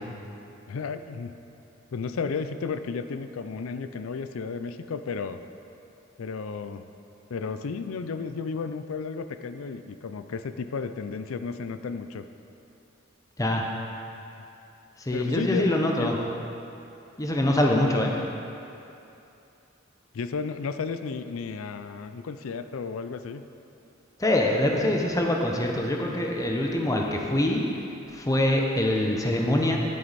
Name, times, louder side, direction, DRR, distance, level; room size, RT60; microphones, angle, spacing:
voice 1, 0.7-1.4 1.9-5.4 6.2-6.8 7.3-12.3 15.1-16.1 20.1-23.4, left 5 dB, 85° left, 10 dB, 0.4 m, -33 dB
voice 2, 15.0-16.2 17.2-18.1 24.2-27.6 28.1-29.8, left 1 dB, 15° left, 0 dB, 0.8 m, -24 dB
11.0 x 7.7 x 4.2 m, 2.8 s
head